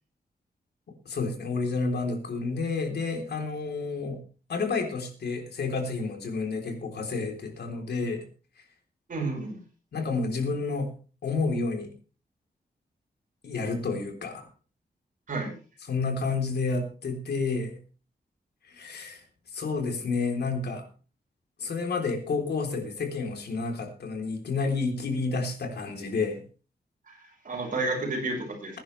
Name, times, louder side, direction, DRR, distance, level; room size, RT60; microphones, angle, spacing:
voice 1, 1.1-4.2 4.5-8.2 9.9-10.9 11.2-11.9 13.4-14.5 15.9-17.8 18.7-19.2 19.5-20.9 21.6-26.4, left 4 dB, 80° left, 2 dB, 3.7 m, -30 dB
voice 2, 9.1-9.6 15.3-15.6 27.1-28.8, right 2 dB, 55° right, 1 dB, 5.5 m, -31 dB
21.0 x 10.5 x 3.3 m, 0.37 s
wide cardioid pair, 160°, 17 cm